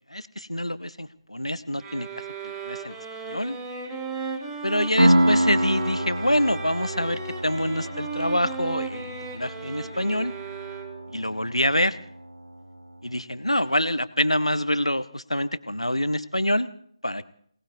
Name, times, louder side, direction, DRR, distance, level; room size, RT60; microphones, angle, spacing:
voice 1, 0.1-2.1 2.4-3.0 3.3-3.6 4.6-10.3 11.1-12.0 13.0-16.7 17.0-17.2, left 1 dB, 85° left, 13 dB, 1.0 m, -26 dB
sound 1, 1.8-11.2, right 4 dB, 10° right, 1.4 m, -36 dB
Piano, 5.0-12.4, right 1 dB, 85° right, 0.9 m, -27 dB
28.5 x 19.0 x 2.7 m, 0.64 s
figure-of-eight pair, 155°, 3 cm